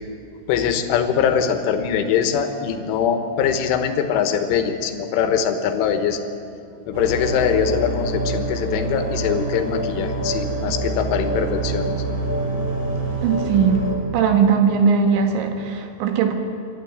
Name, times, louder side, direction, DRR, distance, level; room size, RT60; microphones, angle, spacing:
voice 1, 0.5-6.2 6.9-11.9, left 7 dB, 80° left, 7 dB, 3.7 m, -22 dB
sound 1, 6.9-14.0, right 2 dB, 30° right, 3.2 m, -26 dB
voice 2, 13.2-16.3, right 6 dB, 70° right, 5 dB, 3.7 m, -19 dB
26.0 x 12.5 x 9.4 m, 2.6 s
omnidirectional pair, 5.8 m